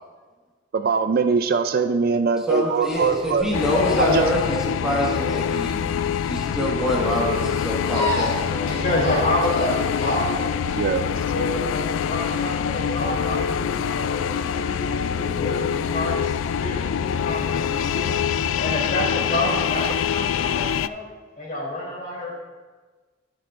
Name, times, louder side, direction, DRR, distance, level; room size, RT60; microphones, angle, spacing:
voice 1, 0.7-3.5 4.0-4.3 10.8-11.0, right 5 dB, 50° right, 9 dB, 0.4 m, -21 dB
voice 2, 2.5-5.8 6.2-8.8, left 1 dB, 5° right, -4 dB, 1.5 m, -25 dB
sound 1, 2.9-11.0, left 1 dB, 65° left, 3.1 m, -30 dB
sound 2, 3.5-20.9, left 8 dB, 85° left, 0.3 m, -25 dB
voice 3, 8.7-10.5 11.3-18.1 18.6-21.0 21.3-22.3, left 1 dB, 45° left, -3 dB, 3.1 m, -29 dB
19.5 x 6.7 x 2.5 m, 1.4 s
head